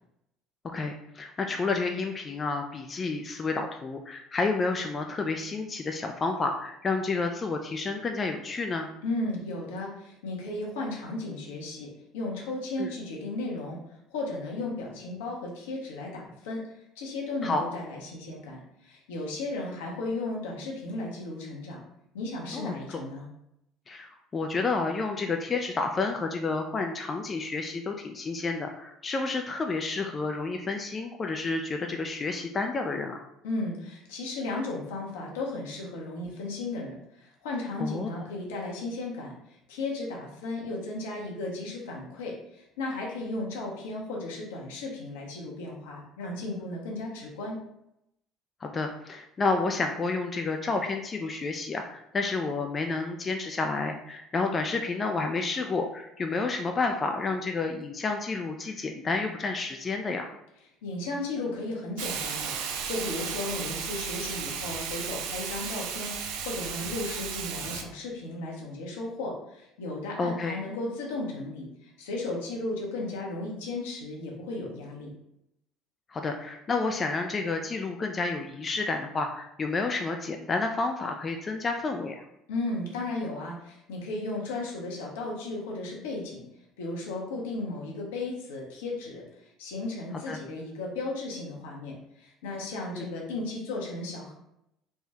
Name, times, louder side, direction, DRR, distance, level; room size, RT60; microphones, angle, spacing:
voice 1, 0.7-8.9 12.8-12.9 17.4-17.6 22.5-23.0 23.9-33.2 37.8-38.1 48.6-60.3 70.2-70.6 76.1-82.2 90.3-90.4 92.9-93.0, left 3 dB, 35° left, 4 dB, 0.3 m, -30 dB
voice 2, 9.0-13.8 14.1-16.6 17.0-21.8 22.1-23.3 33.4-39.3 39.7-47.6 60.8-66.2 66.4-75.1 82.5-86.4 86.8-89.2 89.6-94.3, left 2 dB, 80° left, -2 dB, 0.8 m, -35 dB
Hiss, 62.0-67.8, right 7 dB, 70° right, 0.3 m, -34 dB
3.3 x 2.2 x 2.8 m, 0.81 s
hypercardioid pair, 65°, 0 cm